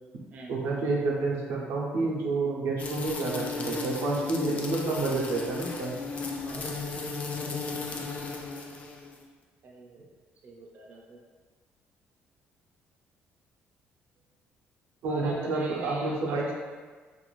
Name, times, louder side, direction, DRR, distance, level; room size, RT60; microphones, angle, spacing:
voice 1, 0.5-5.9 15.0-16.5, right 3 dB, 85° right, -2 dB, 0.6 m, -29 dB
sound 1, 2.8-9.2, left 3 dB, 35° left, 0.3 m, -35 dB
voice 2, 6.4-6.8 9.6-10.1 10.4-11.2 15.1-16.5, right 2 dB, 40° right, -2 dB, 0.3 m, -41 dB
2.5 x 2.3 x 3.0 m, 1.4 s
cardioid pair, 145°, 4 cm